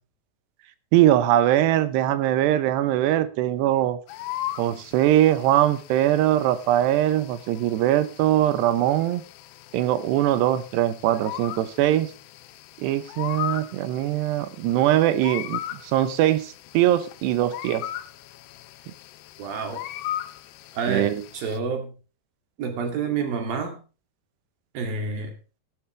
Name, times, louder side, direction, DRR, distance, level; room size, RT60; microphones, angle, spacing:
voice 1, 0.9-4.0 4.6-9.2 9.7-12.1 12.8-17.9 20.9-21.2, right 13 dB, 85° right, 3.1 m, -21 dB
sound 1, 4.1-21.6, left 13 dB, 80° left, 2.8 m, -38 dB
voice 2, 19.4-19.8 20.7-21.9 22.6-23.8 24.7-25.3, right 5 dB, 60° right, 4.2 m, -28 dB
14.5 x 12.0 x 3.3 m
omnidirectional pair, 4.8 m